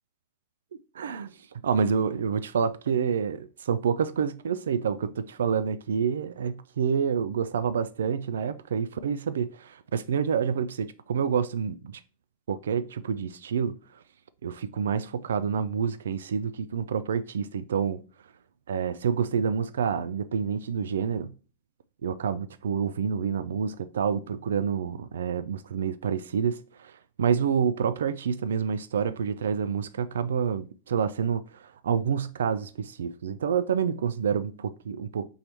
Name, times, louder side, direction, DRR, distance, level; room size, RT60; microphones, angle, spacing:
voice 1, 1.0-1.3 1.6-12.0 12.5-13.8 14.4-18.0 18.7-21.3 22.0-26.9 27.2-35.3, right 7 dB, 80° right, 0.3 m, -28 dB
5.3 x 3.0 x 3.2 m
hypercardioid pair, 110°, 0 cm